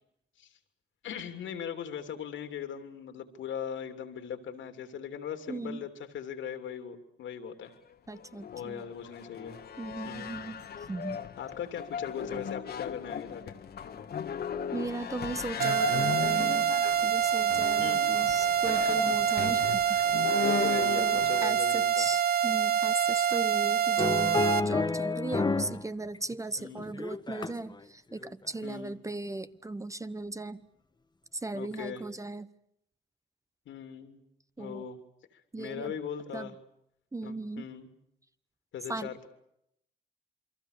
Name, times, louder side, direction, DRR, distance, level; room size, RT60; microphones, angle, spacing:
voice 1, 1.0-7.7 8.5-9.6 10.0-10.3 11.4-13.6 17.8-18.2 18.8-19.2 20.4-22.1 26.6-26.9 28.6-29.0 31.5-32.0 33.6-34.2 34.6-35.0 35.3-36.5 37.2-37.9 38.7-39.3, left 8 dB, 75° left, 7 dB, 3.1 m, -39 dB
voice 2, 5.5-5.9 8.1-8.8 9.8-10.6 10.9-11.3 14.7-16.7 17.0-20.0 20.3-20.7 21.0-24.3 24.6-30.6 31.3-32.5 34.6-34.9 35.5-35.9 36.3-36.5 37.1-37.7 38.9-39.1, right 2 dB, 15° right, 13 dB, 0.9 m, -37 dB
sound 1, 7.9-21.4, left 7 dB, 50° left, 1.5 m, -37 dB
sound 2, 15.6-24.6, right 8 dB, 50° right, 1.1 m, -26 dB
sound 3, 24.0-25.8 26.1-27.7 28.2-28.5, left 3 dB, 20° left, 1.3 m, -30 dB
28.5 x 23.5 x 6.8 m, 0.76 s
cardioid pair, 90°, 20 cm